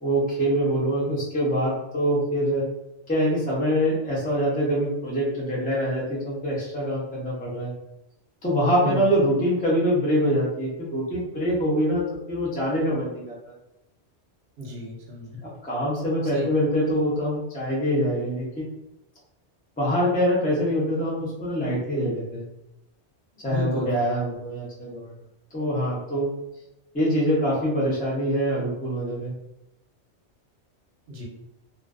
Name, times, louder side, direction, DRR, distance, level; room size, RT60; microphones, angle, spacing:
voice 1, 0.0-2.7 3.1-7.7 8.4-13.3 15.6-18.6 19.8-22.4 23.4-25.1 25.5-26.3 26.9-29.3, equal, 10° left, -6 dB, 0.4 m, -24 dB
voice 2, 14.6-15.4 16.2-16.5 23.3-23.9 31.1-31.2, right 1 dB, 65° right, -2 dB, 0.8 m, -33 dB
2.4 x 2.1 x 2.4 m, 0.88 s
omnidirectional pair, 1.2 m